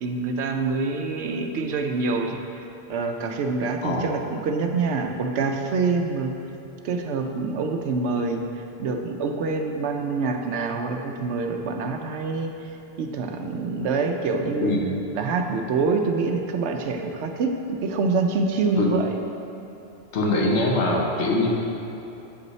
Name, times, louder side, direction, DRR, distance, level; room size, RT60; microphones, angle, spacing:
voice 1, 0.0-2.4 2.9-6.3 6.8-8.4 8.8-12.5 13.0-14.7 15.1-19.2, right 4 dB, 80° right, 4 dB, 0.9 m, -26 dB
voice 2, 20.1-21.5, left 2 dB, 85° left, -1 dB, 1.2 m, -22 dB
8.5 x 5.2 x 3.1 m, 2.9 s
omnidirectional pair, 1.2 m